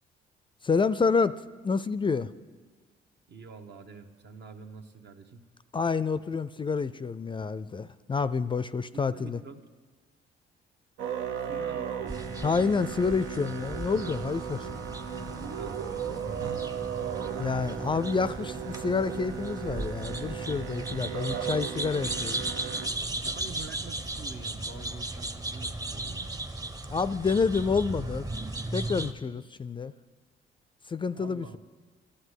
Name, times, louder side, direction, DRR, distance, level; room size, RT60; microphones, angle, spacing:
voice 1, 0.6-2.3 5.7-9.4 12.4-14.7 17.4-22.4 26.9-28.3 28.7-29.9 30.9-31.6, left 5 dB, 25° left, 15 dB, 0.4 m, -28 dB
voice 2, 3.3-5.4 9.1-9.6 11.4-12.2 14.7-16.7 23.2-26.3 31.1-31.6, right 5 dB, 60° right, 6 dB, 1.2 m, -47 dB
Musical instrument, 11.0-22.9, right 8 dB, 85° right, 0.9 m, -36 dB
sound 1, 12.1-29.1, right 2 dB, 20° right, 0.8 m, -37 dB
12.5 x 11.5 x 8.2 m, 1.4 s
cardioid pair, 90°, 20 cm